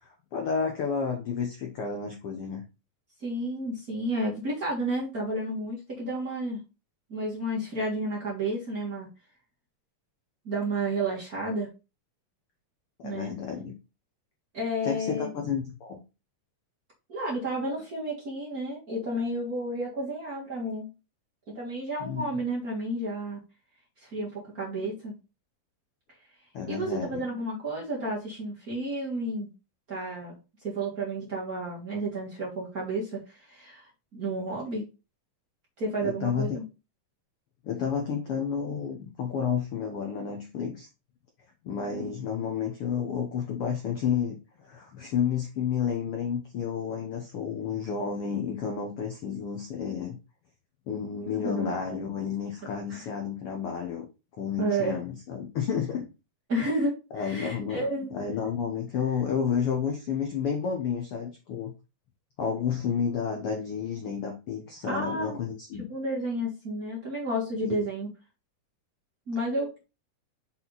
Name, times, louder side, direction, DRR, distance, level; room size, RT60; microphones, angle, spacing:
voice 1, 0.0-2.6 13.0-13.7 14.8-16.0 22.0-22.3 26.5-27.2 36.0-36.5 37.6-40.9 41.6-50.2 50.9-54.1 54.4-56.1 57.1-57.8 58.1-61.7 62.4-65.9 67.7-67.8, left 7 dB, 75° left, 2 dB, 1.3 m, -31 dB
voice 2, 3.2-6.6 7.1-9.1 10.4-11.7 13.0-13.3 14.5-15.3 17.1-20.9 21.5-23.4 24.0-25.1 26.7-29.5 29.9-30.4 30.6-34.8 35.8-36.6 51.4-51.8 52.9-53.1 54.6-55.0 56.5-58.2 64.9-65.4 65.9-68.1 69.3-69.7, right 1 dB, 35° right, -4 dB, 1.8 m, -31 dB
6.4 x 4.1 x 4.0 m, 0.29 s
omnidirectional pair, 3.9 m